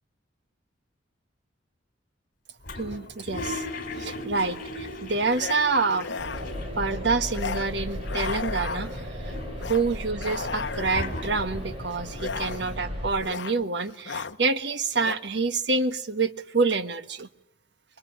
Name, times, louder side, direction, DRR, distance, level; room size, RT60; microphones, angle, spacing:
Toilet flush, 2.6-7.0 7.3-7.4 7.6-8.4 8.9-11.8, left 2 dB, 50° left, 4.0 m, -37 dB
voice 1, 2.8-3.7 4.0-6.1 6.8-9.3 9.6-17.3, right 4 dB, 60° right, 11 dB, 1.4 m, -27 dB
sound 1, 3.3-3.5 5.3-5.6 5.9-6.6 7.3-7.7 8.0-9.1 9.6-9.8 10.2-11.2 12.1-12.9 13.2-13.6 13.9-14.4 14.9-15.1, left 5 dB, 65° left, 1.0 m, -35 dB
sound 2, 6.2-13.1, equal, 30° right, 7.5 m, -35 dB
26.5 x 22.5 x 10.0 m, 0.74 s
head